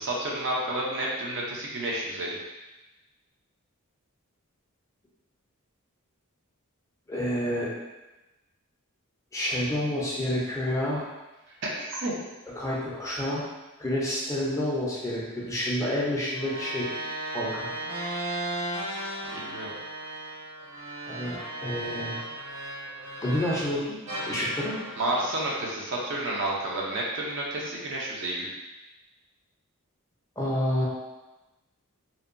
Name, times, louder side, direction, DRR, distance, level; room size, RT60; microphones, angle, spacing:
voice 1, 0.0-2.3 11.6-12.1 19.3-19.7 25.0-28.5, right 1 dB, 55° right, -3 dB, 0.5 m, -30 dB
voice 2, 7.1-7.7 9.3-11.1 12.6-13.5 13.8-17.7 21.1-22.2 23.2-24.0 24.3-24.8 30.4-30.9, left 1 dB, 15° left, -6 dB, 0.5 m, -29 dB
sound 1, 16.3-23.7 24.1-26.5, right 1 dB, 90° right, 0.9 m, -36 dB
2.6 x 2.1 x 2.5 m, 1.1 s
head